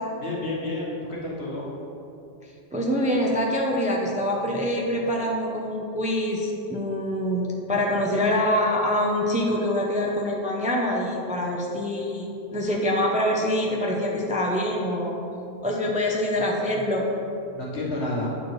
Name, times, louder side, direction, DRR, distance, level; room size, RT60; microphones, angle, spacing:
voice 1, 0.2-1.7 17.5-18.3, left 2 dB, 85° left, -5 dB, 1.6 m, -30 dB
voice 2, 2.7-15.1 15.6-17.1, left 1 dB, 10° right, -1 dB, 0.3 m, -25 dB
8.6 x 4.4 x 3.1 m, 2.8 s
omnidirectional pair, 1.1 m